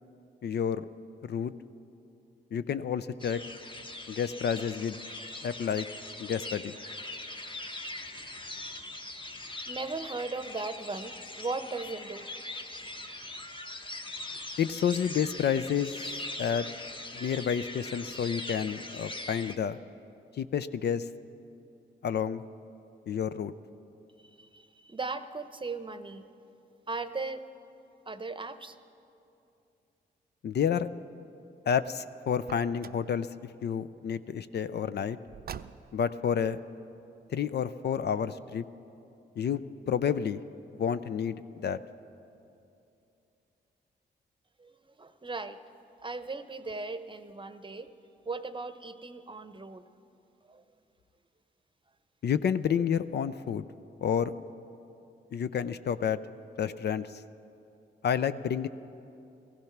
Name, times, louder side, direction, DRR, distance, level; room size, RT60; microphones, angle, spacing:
voice 1, 0.4-0.9 1.2-1.5 2.5-3.4 4.1-5.0 5.4-5.9 6.2-6.8 14.6-16.1 16.4-16.7 17.1-19.8 20.4-21.1 22.0-22.4 23.1-23.5 30.4-30.9 31.7-33.3 33.6-35.2 35.9-36.6 37.3-38.6 39.4-39.6 39.9-40.4 40.8-41.8 52.2-53.7 54.0-54.3 55.3-56.2 56.6-57.1 58.0-58.7, left 8 dB, 60° left, 13 dB, 0.5 m, -29 dB
sound 1, 3.2-19.5, left 2 dB, 25° left, 1.1 m, -41 dB
voice 2, 9.7-12.3 24.2-26.3 26.9-27.5 28.1-28.8 44.6-45.6 46.0-47.9 48.3-49.8 50.5-50.6, right 3 dB, 25° right, 11 dB, 0.8 m, -38 dB
Car, 32.4-33.1 35.3-36.1, right 8 dB, 50° right, 0.4 m, -44 dB
16.0 x 15.0 x 5.9 m, 2.7 s
supercardioid pair, 55°, 19 cm